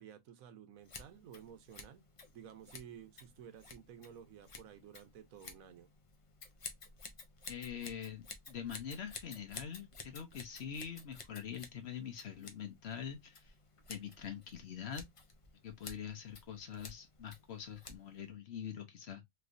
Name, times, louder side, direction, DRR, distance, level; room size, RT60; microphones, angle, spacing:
voice 1, 0.0-2.0 2.3-5.9, right 9 dB, 80° right, 1.1 m, -53 dB
Scissors, 0.8-18.3, left 4 dB, 40° left, 0.4 m, -53 dB
voice 2, 7.5-13.5 13.9-15.1 15.6-19.2, left 8 dB, 55° left, 0.9 m, -44 dB
3.2 x 3.1 x 2.4 m
omnidirectional pair, 1.4 m